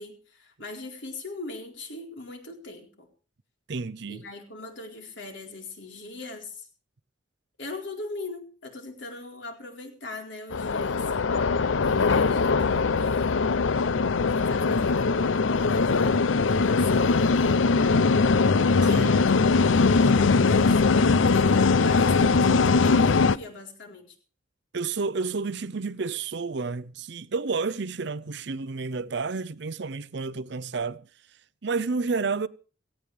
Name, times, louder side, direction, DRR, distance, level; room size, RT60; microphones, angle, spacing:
voice 1, 0.0-3.1 4.1-6.7 7.6-11.0 11.3-11.5 11.8-13.4 14.3-18.0 18.3-20.8 21.2-24.2, left 2 dB, 70° left, 4.2 m, -41 dB
voice 2, 3.7-4.2 18.9-19.2 24.7-31.1 31.6-32.5, right 4 dB, 60° right, 0.6 m, -30 dB
sound 1, 10.5-23.4, left 4 dB, 85° left, 0.6 m, -21 dB
17.5 x 16.5 x 3.4 m
head